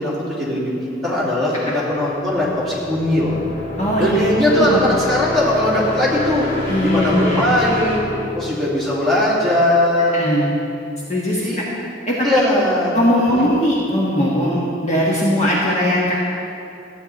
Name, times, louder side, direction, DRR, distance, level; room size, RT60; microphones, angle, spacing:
voice 1, 0.0-3.4 4.0-6.5 6.8-8.0 8.3-10.2 11.3-11.6 12.2-13.0 13.3-13.5, left 1 dB, ahead, -9 dB, 2.9 m, -19 dB
sound 1, 2.1-9.8, left 2 dB, 70° left, 2.0 m, -29 dB
voice 2, 3.8-4.2 4.5-4.8 6.7-7.4 10.1-10.5 11.1-11.6 12.1-12.3 12.9-16.2, equal, 35° left, -5 dB, 1.4 m, -19 dB
14.5 x 9.3 x 4.2 m, 2.6 s
head